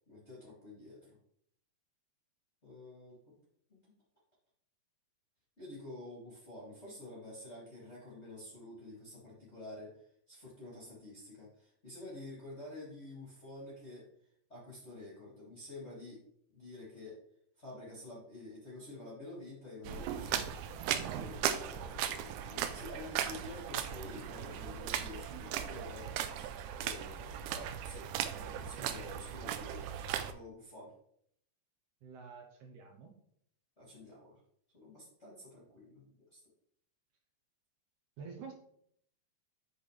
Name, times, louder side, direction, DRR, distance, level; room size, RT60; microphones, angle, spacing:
voice 1, 0.1-1.2 2.6-3.4 3.7-3.8 5.6-14.1 14.5-16.2 16.5-17.2 17.6-28.1 28.3-29.9 30.2-30.9 33.8-34.4 34.7-36.4, left 2 dB, 20° left, -7 dB, 2.2 m, -49 dB
sound 1, 19.8-30.3, right 10 dB, 90° right, 1.8 m, -37 dB
voice 2, 32.0-33.2 38.2-38.5, right 5 dB, 70° right, 2 dB, 2.0 m, -48 dB
8.8 x 5.8 x 3.3 m, 0.69 s
omnidirectional pair, 4.1 m